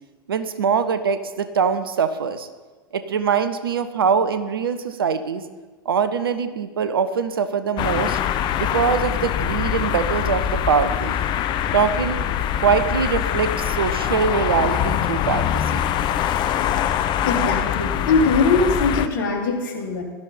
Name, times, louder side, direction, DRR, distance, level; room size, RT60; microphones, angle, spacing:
voice 1, 0.3-2.5 2.9-5.4 5.8-8.2 8.6-11.2 11.7-12.3 12.6-15.8, right 6 dB, 75° right, 11 dB, 1.1 m, -23 dB
sound 1, 7.8-19.1, left 10 dB, 40° left, 0.9 m, -23 dB
voice 2, 17.2-20.0, left 4 dB, 60° left, 1 dB, 3.2 m, -21 dB
16.5 x 13.0 x 4.3 m, 1.3 s
figure-of-eight pair, 85°, 12 cm